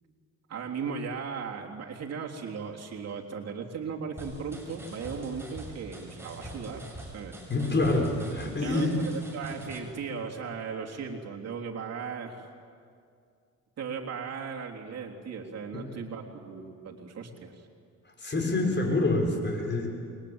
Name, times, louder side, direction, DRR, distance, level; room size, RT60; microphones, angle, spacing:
voice 1, 0.5-7.4 8.6-12.5 13.8-17.7 18.5-18.7, right 5 dB, 55° right, 0 dB, 3.5 m, -37 dB
sound 1, 4.2-9.8, right 1 dB, 10° right, 6.6 m, -44 dB
voice 2, 7.5-8.9 15.7-15.8 18.2-19.9, left 2 dB, 35° left, 2 dB, 6.5 m, -26 dB
28.5 x 22.5 x 8.9 m, 2.3 s
cardioid pair, 90°, 30 cm